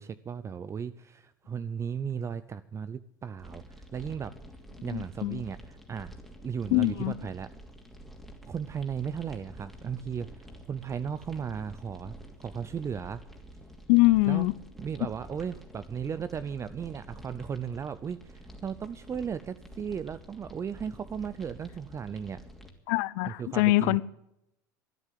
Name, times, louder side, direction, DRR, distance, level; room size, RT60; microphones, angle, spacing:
voice 1, 0.0-4.3 4.8-6.1 6.4-7.5 8.4-12.1 12.4-13.2 14.3-14.5 14.8-22.4 23.2-24.0, right 7 dB, 25° right, 0.6 m, -36 dB
sound 1, 3.4-22.7, equal, ahead, 2.7 m, -49 dB
voice 2, 4.9-5.4 6.7-7.1 13.9-14.5 22.9-24.0, left 21 dB, 65° left, 0.7 m, -23 dB
13.5 x 9.7 x 7.5 m
hypercardioid pair, 90°, 11 cm